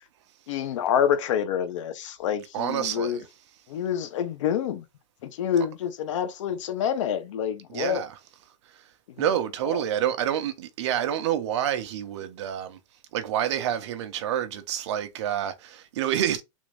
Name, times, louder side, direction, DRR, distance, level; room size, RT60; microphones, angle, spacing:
voice 1, 0.5-3.2 3.7-4.8 5.2-8.0 9.2-9.3 9.6-9.8, left 9 dB, 65° left, 0.7 m, -27 dB
voice 2, 2.5-3.2 7.7-8.1 9.2-12.8 13.1-16.4, right 10 dB, 60° right, 0.7 m, -28 dB
3.6 x 2.5 x 3.2 m
supercardioid pair, 170°, 17 cm